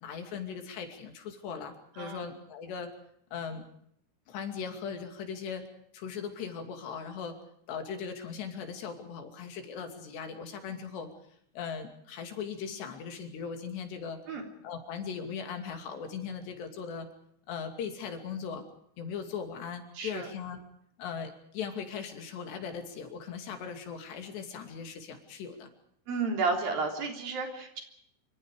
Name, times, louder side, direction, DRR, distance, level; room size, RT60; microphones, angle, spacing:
voice 1, 0.0-2.9 3.3-3.7 4.3-5.7 5.9-7.3 7.7-11.1 11.5-14.2 14.6-17.1 17.5-18.7 19.0-20.6 21.0-25.7, left 6 dB, 85° left, 5 dB, 4.8 m, -39 dB
voice 2, 20.0-20.3 26.1-27.8, right 4 dB, 60° right, 2 dB, 5.4 m, -32 dB
26.5 x 25.5 x 5.0 m, 0.69 s
omnidirectional pair, 4.8 m